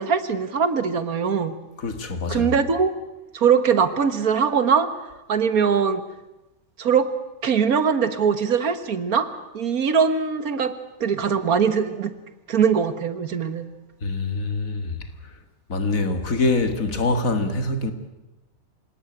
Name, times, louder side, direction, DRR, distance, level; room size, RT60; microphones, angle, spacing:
voice 1, 0.0-1.5 2.3-2.9 3.3-4.9 5.3-6.0 6.8-7.1 7.4-9.3 9.5-10.7 11.0-12.1 12.5-13.7, right 6 dB, 80° right, 1.9 m, -21 dB
voice 2, 1.8-2.5 14.0-15.0 15.7-17.9, left 3 dB, 70° left, 2.4 m, -24 dB
26.5 x 17.5 x 9.2 m
omnidirectional pair, 1.5 m